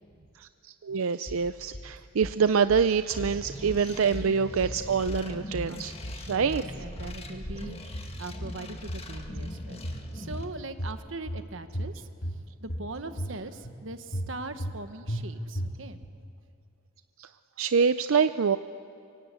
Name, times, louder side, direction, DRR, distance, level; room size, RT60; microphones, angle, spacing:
voice 1, 0.4-6.6 17.2-17.3 17.6-18.6, right 6 dB, 80° right, 12 dB, 0.5 m, -26 dB
sound 1, 1.3-1.9 2.2-2.9 3.2-3.9 4.1-4.8 5.1-5.8 6.0-6.7 7.0-7.7 7.9-8.6 8.9-9.6 9.8-10.5 10.8-11.4 11.7-12.4 12.7-13.3 13.6-13.8 14.1-14.8 15.1-15.2 15.6-16.1, equal, 70° left, 2.6 m, -36 dB
sound 2, 3.1-10.5, left 1 dB, 30° left, 1.7 m, -41 dB
voice 2, 6.3-12.1 12.6-16.0, right 2 dB, 65° right, 9 dB, 1.4 m, -41 dB
25.5 x 23.5 x 8.3 m, 2.6 s
head